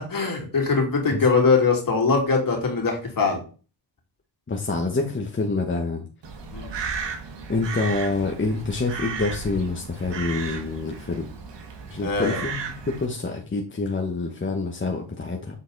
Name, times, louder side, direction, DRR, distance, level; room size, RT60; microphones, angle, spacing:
voice 1, 0.1-3.4 6.5-6.7 12.0-12.4, left 4 dB, 45° left, 0 dB, 2.9 m, -22 dB
voice 2, 4.5-6.1 7.5-11.3 11.9-12.6 12.9-15.5, left 3 dB, 25° left, 2 dB, 1.2 m, -27 dB
Crow, 6.2-13.1, right 5 dB, 65° right, 1.6 m, -34 dB
7.5 x 4.0 x 4.0 m, 0.37 s
cardioid pair, 55°, 46 cm